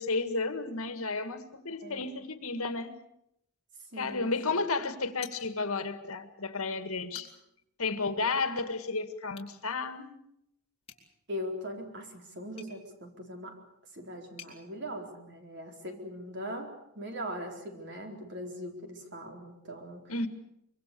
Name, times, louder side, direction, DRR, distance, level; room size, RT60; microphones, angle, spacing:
voice 1, 0.0-3.0 4.0-7.3 7.8-10.1 20.1-20.3, left 3 dB, 80° left, 9 dB, 2.0 m, -32 dB
voice 2, 3.9-4.3 11.3-13.6 13.9-20.1, equal, 55° right, 3 dB, 4.1 m, -40 dB
sound 1, 5.2-6.0 6.3-6.4 6.9-7.6 9.3-9.6 10.8-14.6, left 8 dB, 25° left, 4.0 m, -52 dB
25.0 x 23.5 x 6.9 m, 0.78 s
head